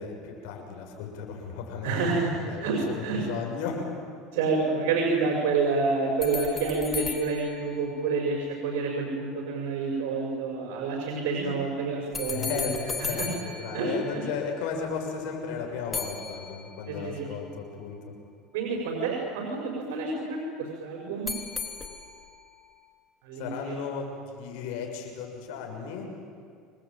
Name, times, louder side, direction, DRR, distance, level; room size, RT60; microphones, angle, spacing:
voice 1, 0.0-3.9 12.3-18.2 23.3-26.1, left 6 dB, 75° left, 2 dB, 6.9 m, -35 dB
voice 2, 1.8-3.2 4.3-12.6 13.0-13.3 13.7-14.2 16.9-17.3 18.5-21.3 23.2-23.8, right 4 dB, 80° right, 0 dB, 6.0 m, -28 dB
sound 1, 6.2-8.6 12.1-14.6 15.9-17.1 21.3-22.5, left 4 dB, 15° left, 3.0 m, -37 dB
28.0 x 20.5 x 9.1 m, 2.2 s
supercardioid pair, 120°, 0 cm